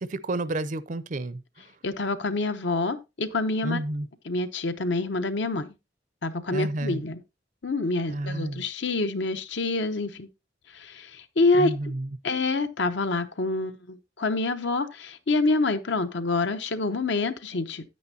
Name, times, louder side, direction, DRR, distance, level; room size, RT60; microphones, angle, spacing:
voice 1, 0.0-1.4 3.6-4.1 6.5-7.0 8.1-8.6 11.6-12.1, right 1 dB, 40° right, 0.5 m, -30 dB
voice 2, 1.8-3.8 4.3-5.7 6.2-7.2 7.6-10.3 10.7-11.7 12.2-17.8, left 3 dB, 75° left, 0.8 m, -27 dB
9.5 x 9.1 x 2.8 m
head